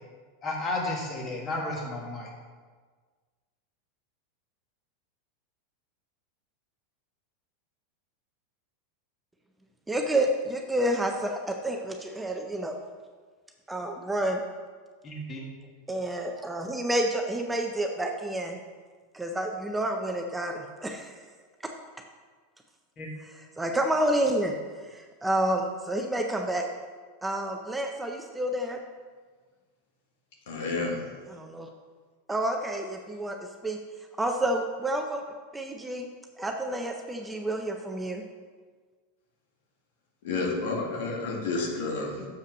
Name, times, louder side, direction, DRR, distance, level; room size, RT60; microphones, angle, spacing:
voice 1, 0.4-2.3 15.0-15.5 23.0-23.1, left 2 dB, 25° left, 0 dB, 1.5 m, -32 dB
voice 2, 9.9-12.8 13.7-14.4 15.9-18.6 19.1-21.2 21.6-21.7 23.2-24.6 24.9-26.7 27.2-28.8 31.3-31.7 32.3-33.4 33.6-33.8 34.2-35.2 35.5-36.1 36.4-38.2, right 1 dB, 5° right, 3 dB, 0.5 m, -29 dB
voice 3, 30.5-31.0 40.2-42.3, left 3 dB, 75° left, 0 dB, 1.8 m, -30 dB
6.8 x 5.5 x 6.0 m, 1.5 s
supercardioid pair, 155°, 0 cm